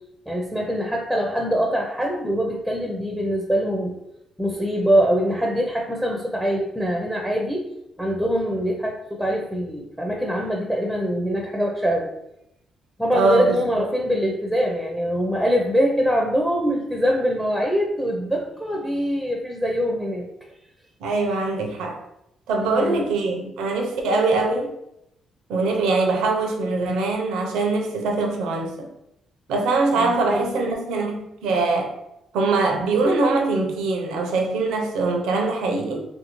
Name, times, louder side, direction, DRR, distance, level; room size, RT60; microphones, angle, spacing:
voice 1, 0.3-4.0 4.4-7.7 8.0-12.1 13.0-20.3 22.6-23.0 24.3-24.4 30.0-30.7, equal, ahead, 0 dB, 0.4 m, -23 dB
voice 2, 13.1-13.9 21.0-22.0 22.5-24.7 25.5-28.9 29.5-31.9 32.3-36.1, right 3 dB, 90° right, 1 dB, 0.5 m, -23 dB
2.7 x 2.6 x 2.9 m, 0.83 s
cardioid pair, 90°, 0 cm